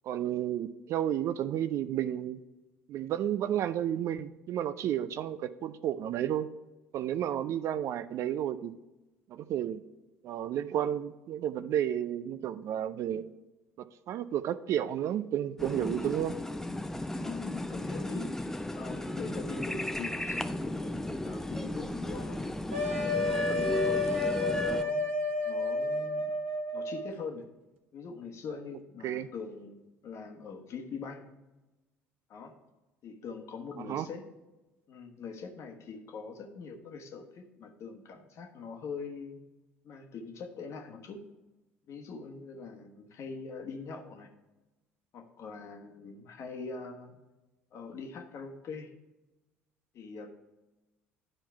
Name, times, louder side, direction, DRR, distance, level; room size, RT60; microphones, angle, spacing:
voice 1, 0.1-2.4 2.9-6.5 6.9-8.7 9.3-9.8 10.2-13.3 13.8-16.4 29.0-29.3 33.9-34.1, right 10 dB, 50° right, 14 dB, 0.4 m, -32 dB
sound 1, 15.6-24.8, left 1 dB, 5° left, 0.5 m, -34 dB
voice 2, 17.2-18.5 18.7-22.6 23.2-25.1 25.4-26.4 26.7-27.5 27.9-31.3 32.3-32.5 33.0-34.3 34.9-39.4 39.8-41.2 41.9-44.3 45.1-47.1 47.7-48.9 49.9-50.3, left 4 dB, 50° left, 4 dB, 1.2 m, -43 dB
sound 2, 22.7-27.1, left 2 dB, 75° right, 0.7 m, -31 dB
10.5 x 4.4 x 4.5 m, 1.1 s
figure-of-eight pair, 55°, 6 cm